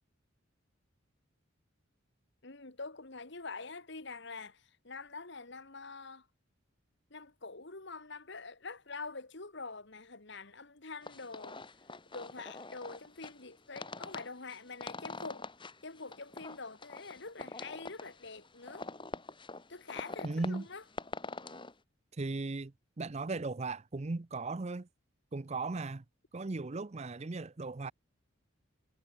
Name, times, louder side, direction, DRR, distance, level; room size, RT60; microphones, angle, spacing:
voice 1, 2.4-6.3 7.1-11.6 12.1-15.5 15.8-18.9 19.7-20.8, left 4 dB, 60° left, 2.2 m, -45 dB
sound 1, 11.0-21.7, left 3 dB, 25° left, 2.7 m, -45 dB
voice 2, 20.2-20.7 22.1-24.9 25.3-26.0 26.3-27.9, right 3 dB, 35° right, 0.6 m, -37 dB
head